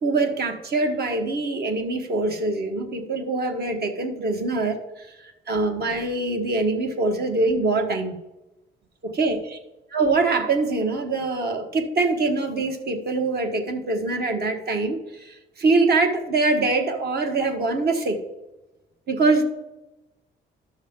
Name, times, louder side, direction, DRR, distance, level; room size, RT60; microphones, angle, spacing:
voice 1, 0.0-8.1 9.0-9.6 9.9-18.2 19.1-19.4, right 3 dB, 55° right, 4 dB, 1.4 m, -24 dB
12.0 x 6.3 x 3.7 m, 1.0 s
cardioid pair, 90°, 20 cm